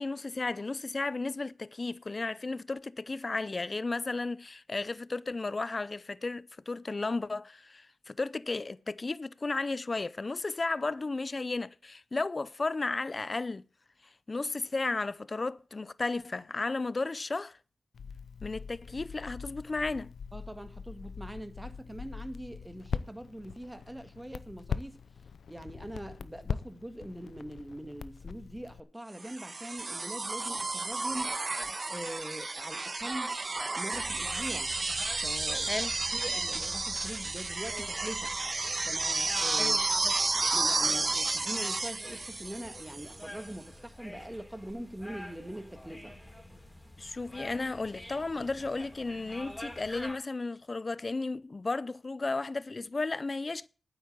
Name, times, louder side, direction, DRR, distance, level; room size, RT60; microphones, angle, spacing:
voice 1, 0.0-13.6 14.3-17.6 18.4-20.1 35.6-35.9 39.6-40.1 47.0-53.7, left 3 dB, 40° left, 0.5 m, -34 dB
Crackle, 17.9-28.8, left 6 dB, 85° left, 0.6 m, -41 dB
voice 2, 20.3-25.0 25.5-31.4 31.9-33.4 33.8-34.7 35.2-35.8 36.1-38.3 38.9-39.8 40.5-46.1, right 1 dB, 10° right, 1.7 m, -42 dB
sound 1, 29.2-43.2 44.7-44.8, right 3 dB, 40° right, 1.4 m, -32 dB
sound 2, 33.9-50.1, left 1 dB, 15° left, 3.8 m, -47 dB
9.5 x 8.3 x 7.6 m
cardioid pair, 70°, 0 cm